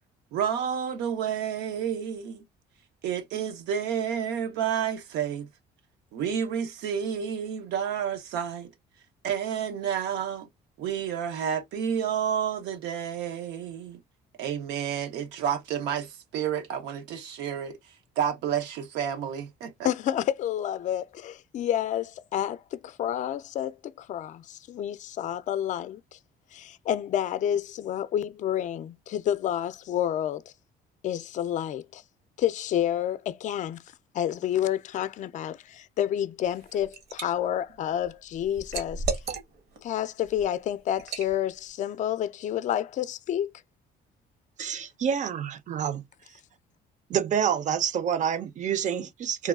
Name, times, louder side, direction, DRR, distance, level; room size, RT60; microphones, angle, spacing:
voice 1, 0.3-2.4 3.0-5.5 6.1-8.7 9.2-10.5 10.8-14.0 14.4-17.8 18.2-19.9, right 8 dB, 85° right, 0.7 m, -30 dB
voice 2, 19.8-26.2 26.5-30.4 31.0-32.0 32.4-33.8 34.1-39.0 39.8-43.5, left 10 dB, 45° left, 0.4 m, -29 dB
Liquid, 36.5-37.3 37.7-39.8 40.2-40.4 41.0-41.3, right 4 dB, 70° right, 1.1 m, -34 dB
voice 3, 44.6-46.0 47.1-49.5, right 8 dB, 45° right, 0.5 m, -27 dB
3.3 x 2.3 x 2.3 m
cardioid pair, 110°, 17 cm